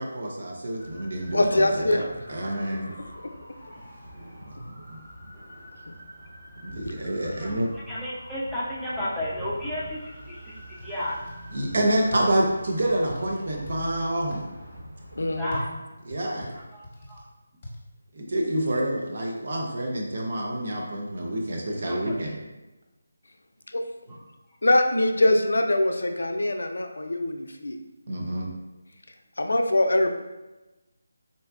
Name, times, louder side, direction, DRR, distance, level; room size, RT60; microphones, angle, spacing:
voice 1, 0.0-2.9 4.6-5.0 6.6-7.7 11.5-14.5 16.1-16.6 18.1-22.4 28.1-28.5, right 1 dB, 50° right, -1 dB, 0.7 m, -28 dB
sound 1, 0.8-15.5, equal, 30° right, 1.1 m, -44 dB
voice 2, 1.3-2.0 3.2-3.3 5.9-6.0 7.2-7.3 15.2-15.7 23.7-23.8 24.6-27.8 29.4-30.1, left 1 dB, 70° left, 5 dB, 0.3 m, -23 dB
voice 3, 7.9-10.6 10.8-11.2 15.4-15.7 16.5-16.8 17.1-17.2 21.8-22.1, left 1 dB, ahead, -11 dB, 0.6 m, -32 dB
sound 2, 10.8-11.3 11.7-12.6 13.1-13.8 14.3-14.5 15.5-17.2 17.6-17.8, equal, 35° left, 0.8 m, -39 dB
3.9 x 2.1 x 2.4 m, 1.1 s
figure-of-eight pair, 155°, 0 cm